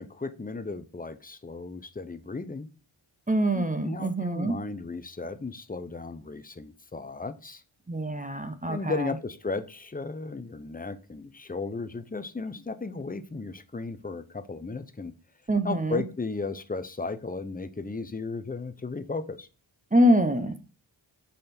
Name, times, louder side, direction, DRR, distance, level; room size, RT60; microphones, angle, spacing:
voice 1, 0.0-2.7 3.5-7.6 8.7-15.1 15.6-19.5, left 3 dB, 20° left, 0.7 m, -35 dB
voice 2, 3.3-4.6 7.9-9.1 15.5-16.0 19.9-20.6, equal, 15° right, 0.7 m, -25 dB
6.4 x 4.1 x 4.3 m
cardioid pair, 45°, 49 cm